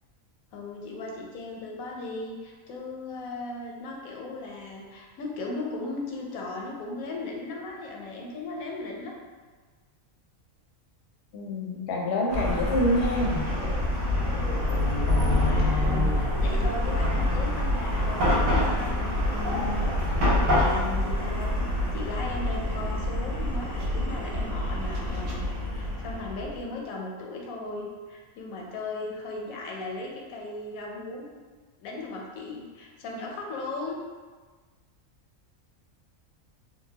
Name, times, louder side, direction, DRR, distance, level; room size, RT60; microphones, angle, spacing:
voice 1, 0.5-9.1 15.2-19.8 20.4-21.6 21.9-25.4 25.7-31.3 31.8-34.0, left 2 dB, 90° left, -1 dB, 1.1 m, -37 dB
voice 2, 11.3-13.5, left 1 dB, 60° left, -1 dB, 0.8 m, -26 dB
Chatter / Car passing by / Traffic noise roadway noise, 12.3-26.6, left 1 dB, 85° right, 1.2 m, -26 dB
3.9 x 2.2 x 2.8 m, 1.4 s
omnidirectional pair, 1.4 m